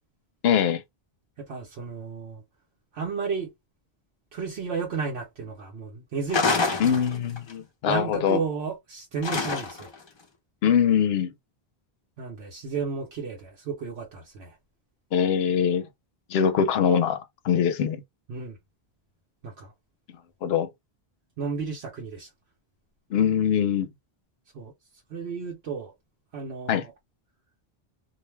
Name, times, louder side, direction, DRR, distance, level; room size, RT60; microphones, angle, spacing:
voice 1, 0.4-0.8 6.8-8.4 10.6-11.3 15.1-15.8 16.3-18.0 20.4-20.7 23.1-23.9 26.7-26.8, left 8 dB, 80° left, 0.8 m, -23 dB
voice 2, 1.4-2.4 2.9-3.5 4.3-7.0 7.9-9.9 12.2-14.6 18.3-18.6 19.4-19.7 21.4-22.3 24.5-24.7 25.1-25.9 26.3-26.9, right 5 dB, 85° right, 1.0 m, -33 dB
sound 1, 6.3-7.5 9.2-10.0, left 4 dB, 30° left, 0.6 m, -26 dB
2.5 x 2.2 x 3.1 m
omnidirectional pair, 1.0 m